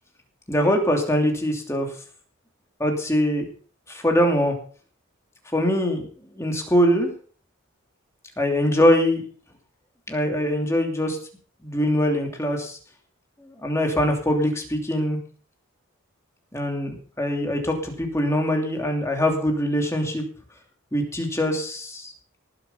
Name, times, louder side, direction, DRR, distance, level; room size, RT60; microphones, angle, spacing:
voice 1, 0.5-1.9 2.8-3.4 3.9-4.5 5.5-6.0 6.3-7.1 8.4-9.2 10.1-11.2 11.6-12.8 13.5-15.2 16.5-20.2 20.9-22.1, equal, 15° left, 2 dB, 2.9 m, -22 dB
18.5 x 7.8 x 5.6 m, 0.43 s
head